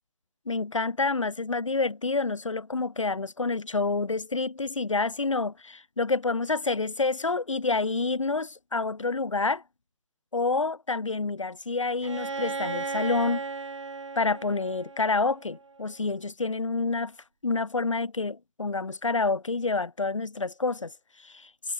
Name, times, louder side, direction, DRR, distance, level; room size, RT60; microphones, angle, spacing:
voice 1, 0.5-9.6 10.3-13.4 14.2-17.1 17.4-20.9 21.2-21.5, left 3 dB, 70° left, 2.5 m, -28 dB
Bowed string instrument, 12.0-15.8, right 4 dB, 60° right, 4.9 m, -35 dB
figure-of-eight pair, 140°, 17 cm